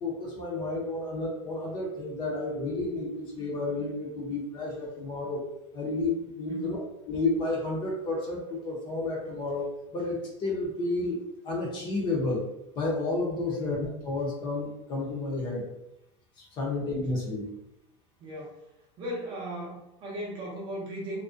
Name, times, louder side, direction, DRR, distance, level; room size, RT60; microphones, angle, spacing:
voice 1, 0.0-5.4 5.7-6.8 7.1-12.4 12.8-15.7 16.4-17.5, left 2 dB, 30° left, -2 dB, 0.6 m, -31 dB
voice 2, 18.2-18.6 19.0-21.2, equal, 30° right, -3 dB, 0.6 m, -37 dB
2.4 x 2.1 x 2.4 m, 0.86 s
supercardioid pair, 155°, 16 cm